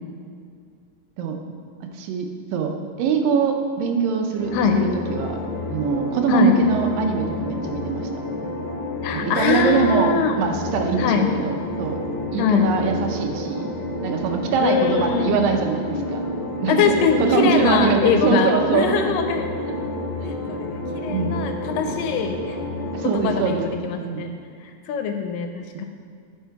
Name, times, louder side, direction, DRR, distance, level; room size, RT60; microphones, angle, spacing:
voice 1, 1.8-5.4 5.7-8.1 9.1-12.0 12.3-13.6 14.0-16.2 16.6-16.9 17.2-19.0 21.1-21.4 22.9-23.6 24.0-24.3, right 5 dB, 80° right, 4 dB, 2.3 m, -23 dB
sound 1, 4.4-23.6, left 1 dB, 65° left, 1.1 m, -30 dB
voice 2, 4.5-4.9 6.3-6.6 9.0-10.4 11.0-11.3 12.4-12.7 14.6-15.4 16.7-19.6 20.3-22.6 23.0-24.3 24.6-25.9, left 6 dB, 80° left, 5 dB, 2.1 m, -22 dB
11.0 x 4.4 x 4.6 m, 2.2 s
omnidirectional pair, 4.1 m